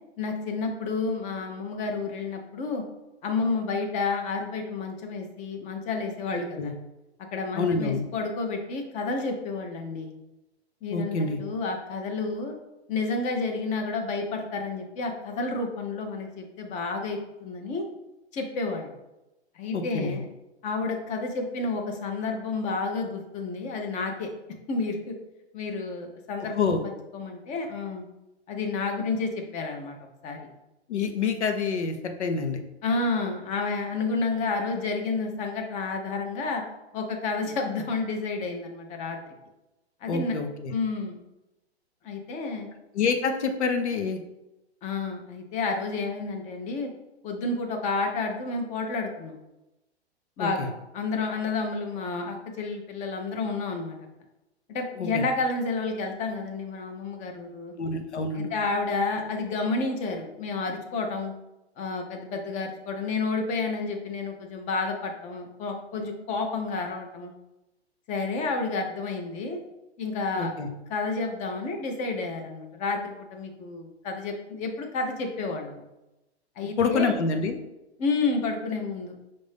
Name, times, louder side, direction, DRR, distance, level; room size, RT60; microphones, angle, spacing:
voice 1, 0.2-2.8 3.2-6.7 7.3-10.1 10.8-12.6 12.9-17.8 18.3-18.9 19.6-20.2 20.6-24.3 24.7-25.1 25.5-26.7 27.1-28.0 28.5-30.0 30.2-30.5 32.8-36.6 36.9-39.3 40.0-40.4 40.7-41.2 42.0-42.7 44.8-46.9 47.2-49.4 50.4-50.7 50.9-54.0 54.7-57.7 58.3-61.3 61.8-67.3 68.1-69.6 70.0-70.5 70.9-75.8 76.6-77.1 78.0-79.2, left 3 dB, 20° left, 3 dB, 0.6 m, -30 dB
voice 2, 6.3-6.7 7.5-8.0 10.9-11.4 19.7-20.2 26.6-26.8 30.9-32.6 40.1-40.7 42.9-44.2 50.4-50.7 55.0-55.2 57.8-58.5 70.3-70.7 76.6-77.6, left 4 dB, 85° left, 6 dB, 0.8 m, -27 dB
5.5 x 2.6 x 3.4 m, 0.96 s
hypercardioid pair, 130°, 33 cm